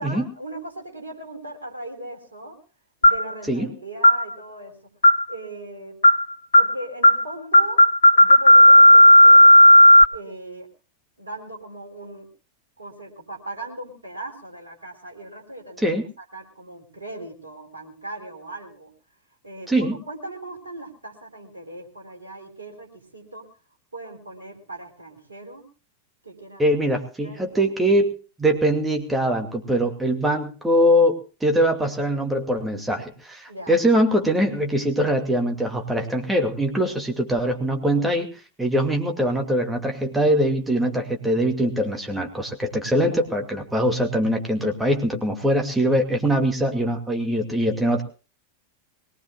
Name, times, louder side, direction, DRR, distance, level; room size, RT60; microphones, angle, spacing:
voice 1, 0.0-2.6 3.0-4.7 5.3-6.0 6.6-7.8 8.1-9.5 10.1-10.7 11.2-12.3 12.8-16.0 16.3-18.9 19.4-23.5 23.9-25.7 26.2-26.6 27.2-27.7 33.5-33.7 43.0-43.2, right 1 dB, 75° right, 2 dB, 4.1 m, -38 dB
sound 1, 3.0-3.3 4.0-4.2 5.0-5.3 6.0-6.2 6.5-6.7 7.0-7.2 7.5-10.0, equal, 75° left, 0.8 m, -11 dB
voice 2, 19.7-20.0 26.6-28.1 28.4-38.3 38.6-48.0, equal, 5° right, 3 dB, 2.4 m, -22 dB
22.0 x 19.0 x 2.5 m, 0.34 s
figure-of-eight pair, 90°, 0 cm